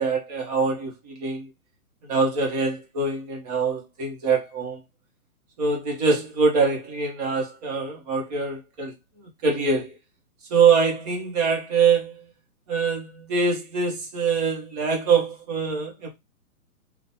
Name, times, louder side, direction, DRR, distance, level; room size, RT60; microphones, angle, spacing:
voice 1, 0.0-1.5 2.1-4.8 5.6-8.9 9.4-9.9 10.5-12.2 12.7-16.1, right 5 dB, 25° right, 1.1 m, -24 dB
3.9 x 2.5 x 2.7 m
hypercardioid pair, 150°, 46 cm